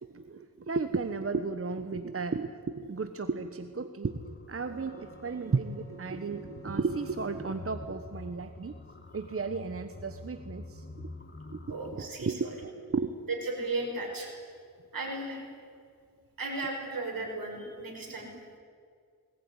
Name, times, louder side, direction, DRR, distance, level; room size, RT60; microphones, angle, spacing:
voice 1, 0.0-8.7 9.1-10.8 11.5-13.1, right 4 dB, 40° right, 9 dB, 1.2 m, -34 dB
sound 1, 4.0-12.1, left 2 dB, 30° left, 2.0 m, -47 dB
Wind instrument woodwind instrument, 4.7-8.8, right 4 dB, 10° left, 4.8 m, -54 dB
voice 2, 11.7-12.4 13.3-14.3 14.9-15.5 16.4-18.3, right 2 dB, 70° right, 1 dB, 6.3 m, -35 dB
20.5 x 19.0 x 9.8 m, 2.2 s
cardioid pair, 70°, 35 cm